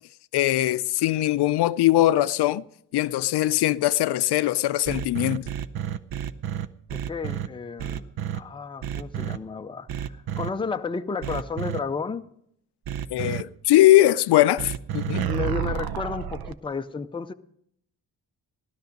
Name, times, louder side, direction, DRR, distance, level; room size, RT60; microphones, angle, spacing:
voice 1, 0.3-2.6 2.9-5.5 13.1-15.3, left 15 dB, 75° left, 0.5 m, -21 dB
sound 1, 4.9-7.5 7.8-8.4 8.8-9.4 9.9-10.5 11.2-11.8 12.9-13.4 14.6-16.5, right 10 dB, 65° right, 0.7 m, -30 dB
voice 2, 6.9-12.3 15.2-17.3, left 5 dB, 15° left, 0.5 m, -32 dB
16.0 x 12.0 x 5.2 m
wide cardioid pair, 140°, 40 cm